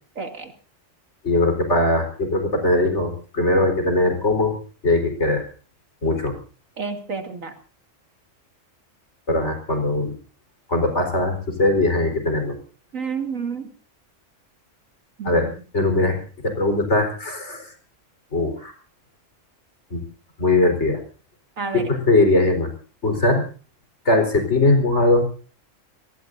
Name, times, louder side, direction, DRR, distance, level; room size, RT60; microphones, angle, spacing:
voice 1, 0.2-0.5 6.8-7.5 12.9-13.6 15.2-15.5 21.6-21.8, right 5 dB, 85° right, 5 dB, 2.9 m, -29 dB
voice 2, 1.2-4.6 4.8-5.5 6.0-6.3 9.3-10.1 10.7-12.6 15.2-15.5 15.7-16.2 16.4-17.7 18.3-18.7 19.9-20.0 20.4-21.0 21.7-22.7 23.0-23.4 24.0-25.2, left 2 dB, 60° left, 5 dB, 4.7 m, -20 dB
27.5 x 18.5 x 2.7 m, 0.37 s
omnidirectional pair, 1.3 m